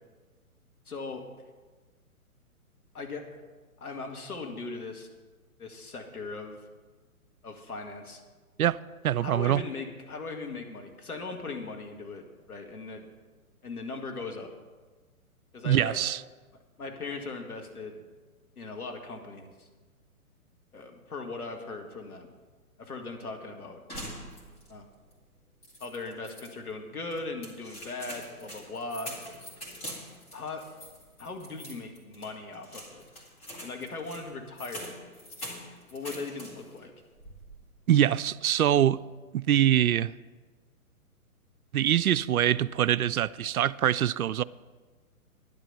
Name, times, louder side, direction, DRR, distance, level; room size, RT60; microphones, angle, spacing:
voice 1, 0.9-1.2 2.9-3.4 3.8-5.1 5.6-6.6 7.4-8.2 9.2-13.1 13.6-14.5 15.5-16.0 16.8-18.1 18.6-19.7 20.7-22.3 22.8-23.8 24.7-24.9 25.8-29.1 30.3-30.6 31.2-33.0 33.6-34.9 35.9-36.9, left 3 dB, 80° left, 2.1 m, -39 dB
voice 2, 9.0-9.6 15.6-16.2 37.9-39.0 39.3-40.1 41.7-44.4, right 11 dB, 75° right, 0.5 m, -24 dB
sound 1, 23.9-24.8 25.1-25.2 25.6-26.5 27.1-36.8 37.1-37.7, equal, 20° left, 2.4 m, -44 dB
11.0 x 11.0 x 5.6 m
figure-of-eight pair, 130°, 44 cm